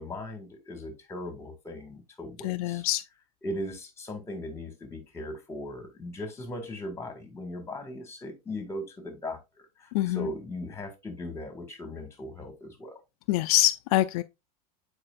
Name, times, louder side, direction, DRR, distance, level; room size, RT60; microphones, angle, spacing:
voice 1, 0.0-2.8 3.4-13.0, left 1 dB, 15° left, 2.1 m, -38 dB
voice 2, 2.4-3.0 9.9-10.3 13.3-14.2, left 16 dB, 70° left, 0.4 m, -25 dB
8.7 x 4.4 x 2.5 m
supercardioid pair, 130°, 19 cm